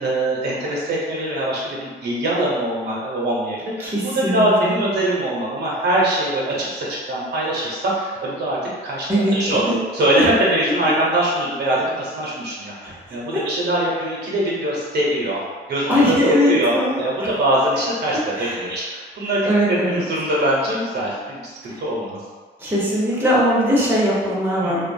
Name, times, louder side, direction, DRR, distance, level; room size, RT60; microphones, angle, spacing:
voice 1, 0.0-9.6 9.9-16.1 16.5-16.7 17.0-22.2 24.6-24.9, right 1 dB, 55° right, -5 dB, 0.8 m, -23 dB
voice 2, 3.8-4.8 9.1-9.8 10.2-10.3 12.8-12.9 15.9-17.3 18.3-18.6 19.4-20.0 21.7-21.8 22.6-24.9, equal, 10° right, -7 dB, 0.8 m, -20 dB
2.5 x 2.2 x 2.6 m, 1.4 s
cardioid pair, 90°, 20 cm